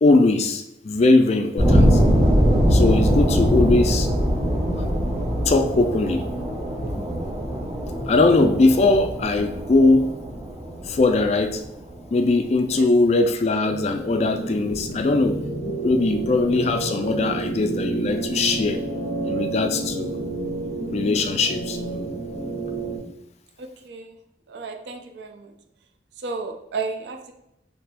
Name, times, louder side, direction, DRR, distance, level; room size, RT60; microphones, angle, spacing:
voice 1, 0.0-2.0 2.7-4.1 5.5-6.3 8.1-10.1 10.8-11.6 12.1-15.4 15.8-18.8 19.2-20.2 20.9-22.1, left 2 dB, 35° left, 6 dB, 0.3 m, -20 dB
sound 1, 1.6-12.3, equal, 35° right, 1.3 m, -22 dB
sound 2, 13.6-23.0, right 3 dB, 85° right, 1.2 m, -30 dB
voice 2, 24.5-25.5 26.2-27.3, right 4 dB, 70° right, 5 dB, 0.4 m, -32 dB
3.2 x 2.9 x 3.4 m, 0.83 s
head